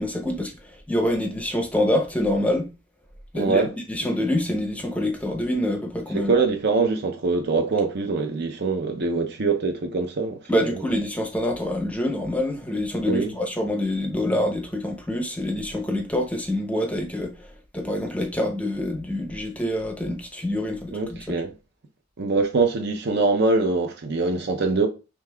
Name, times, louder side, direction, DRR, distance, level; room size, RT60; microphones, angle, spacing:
voice 1, 0.0-2.7 3.3-6.3 10.5-21.4, left 1 dB, 5° left, 0.6 m, -26 dB
voice 2, 3.3-3.7 4.0-4.1 6.1-10.8 13.0-13.3 20.9-21.5 22.2-24.9, right 3 dB, 50° right, 0.5 m, -23 dB
5.3 x 3.2 x 2.2 m
head